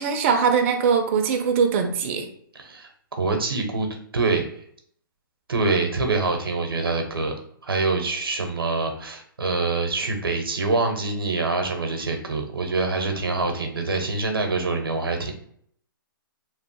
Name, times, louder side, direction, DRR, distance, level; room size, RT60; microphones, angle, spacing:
voice 1, 0.0-2.3, right 6 dB, 35° right, 5 dB, 0.4 m, -21 dB
voice 2, 2.5-4.4 5.5-7.3 7.6-15.3, right 3 dB, 90° right, 4 dB, 0.6 m, -25 dB
3.0 x 2.0 x 2.9 m, 0.64 s
hypercardioid pair, 140°, 12 cm